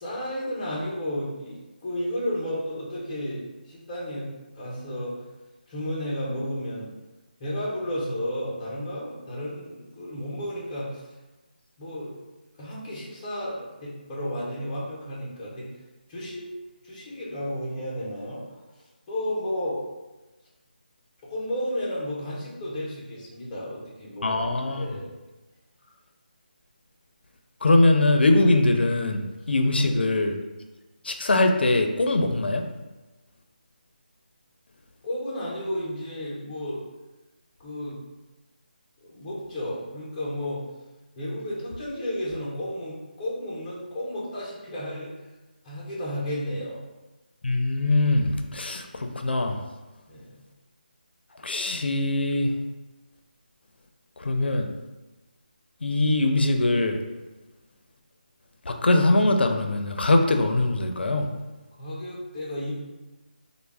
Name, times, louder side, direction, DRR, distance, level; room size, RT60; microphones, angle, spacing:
voice 1, 0.0-3.4 3.7-5.3 5.7-6.9 7.4-11.1 11.8-12.1 12.6-15.7 16.1-16.5 16.8-18.6 19.1-19.8 21.2-24.4 24.7-25.1 29.8-30.0 35.0-36.8 37.6-38.0 39.0-40.6 41.2-45.1 45.6-46.8 50.1-50.4 61.7-62.7, equal, 10° left, -7 dB, 0.4 m, -32 dB
voice 2, 24.2-24.8 27.6-30.3 31.0-32.6 47.4-49.6 51.4-52.5 54.2-54.7 55.8-57.0 58.7-61.3, left 2 dB, 85° left, 5 dB, 0.4 m, -22 dB
3.4 x 2.0 x 3.3 m, 1.1 s
figure-of-eight pair, 175°, 5 cm